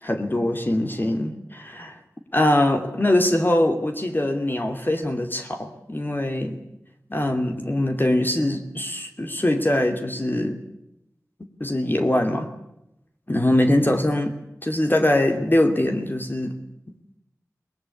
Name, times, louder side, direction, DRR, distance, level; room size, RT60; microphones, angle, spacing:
voice 1, 0.0-2.0 2.3-6.6 7.1-10.6 11.6-12.5 13.3-14.4 14.6-16.6, left 1 dB, 35° left, 5 dB, 2.5 m, -22 dB
22.0 x 19.5 x 9.6 m, 0.84 s
wide cardioid pair, 40°, 6 cm